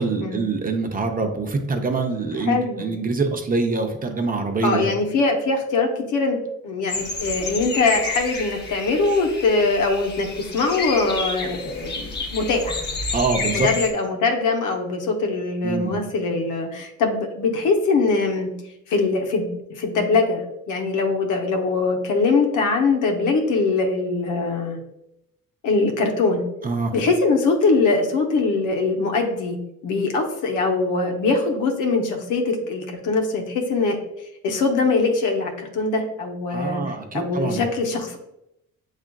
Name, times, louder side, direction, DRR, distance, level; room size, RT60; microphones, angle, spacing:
voice 1, 0.0-4.9 13.1-13.7 15.6-16.0 26.6-26.9 36.5-37.6, right 4 dB, 30° right, 4 dB, 0.6 m, -24 dB
voice 2, 2.4-2.8 4.6-6.4 6.6-10.3 10.5-12.9 13.5-18.5 18.9-20.4 20.7-24.8 25.6-26.4 26.9-29.6 29.8-34.0 34.4-38.2, left 3 dB, 85° left, 2 dB, 0.8 m, -22 dB
sound 1, 6.9-13.9, left 3 dB, 35° left, 0.8 m, -30 dB
6.8 x 2.4 x 2.2 m, 0.84 s
cardioid pair, 90°, 30 cm